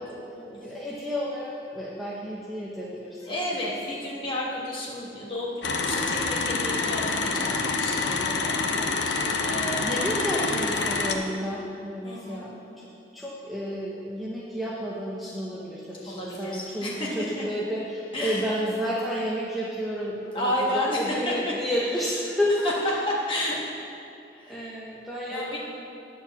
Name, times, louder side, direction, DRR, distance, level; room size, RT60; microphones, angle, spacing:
voice 1, 0.0-3.3 8.4-12.9 13.1-23.0 24.5-25.6, equal, ahead, -7 dB, 0.7 m, -31 dB
voice 2, 3.2-8.5 9.4-10.0 12.0-12.5 16.1-17.1 18.1-18.4 20.3-21.3 23.1-23.6 24.3-24.6 25.3-25.6, left 1 dB, 30° left, -5 dB, 1.5 m, -31 dB
sound 1, 5.6-11.2, left 4 dB, 80° left, 0.7 m, -27 dB
9.2 x 4.5 x 7.1 m, 2.6 s
head